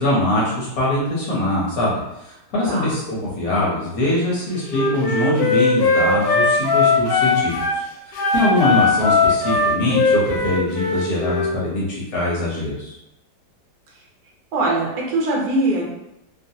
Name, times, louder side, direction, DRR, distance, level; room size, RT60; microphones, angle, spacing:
voice 1, 0.0-7.8 8.1-13.0, left 1 dB, 60° left, -5 dB, 1.1 m, -22 dB
Wind instrument woodwind instrument, 4.7-7.8 8.1-11.5, left 3 dB, 80° left, 1.3 m, -19 dB
voice 2, 14.5-15.8, right 2 dB, 75° right, -2 dB, 1.3 m, -21 dB
2.9 x 2.5 x 2.7 m, 0.89 s
omnidirectional pair, 2.0 m